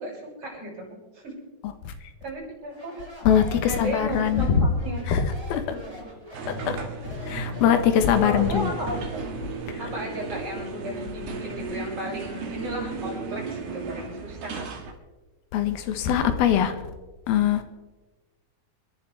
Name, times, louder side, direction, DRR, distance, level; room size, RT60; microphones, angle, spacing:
voice 1, 0.0-1.4 2.2-3.0 3.7-5.1 5.7-6.0 7.4-7.8 8.2-9.2 9.8-14.7, equal, 35° right, -4 dB, 7.7 m, -35 dB
Speech, 2.7-9.4, right 1 dB, 10° right, 5.1 m, -44 dB
voice 2, 3.3-4.7 5.1-5.7 6.7-6.8 7.3-8.7 15.5-16.7 17.3-17.6, left 8 dB, 85° left, 8 dB, 3.1 m, -22 dB
sound 1, 6.3-14.9, right 3 dB, 80° right, 3.7 m, -35 dB
29.0 x 11.5 x 3.4 m, 1.2 s
omnidirectional pair, 4.2 m